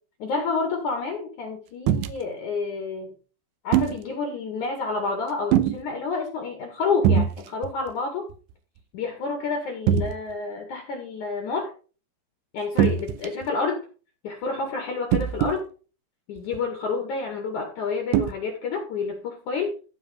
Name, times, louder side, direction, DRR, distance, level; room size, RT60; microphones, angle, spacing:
voice 1, 0.2-3.2 3.6-8.3 8.9-11.7 12.5-13.8 14.2-15.6 16.3-19.8, left 4 dB, 55° left, 3 dB, 2.9 m, -29 dB
sound 1, 1.9-2.1 3.7-4.0 5.5-5.8 7.0-7.3 7.6-7.9 8.3-8.4 9.9-10.1 12.8-13.5 15.1-15.6 16.5-16.6 18.1-18.3, right 9 dB, 80° right, 3.0 m, -21 dB
15.0 x 5.0 x 5.2 m, 0.36 s
omnidirectional pair, 5.1 m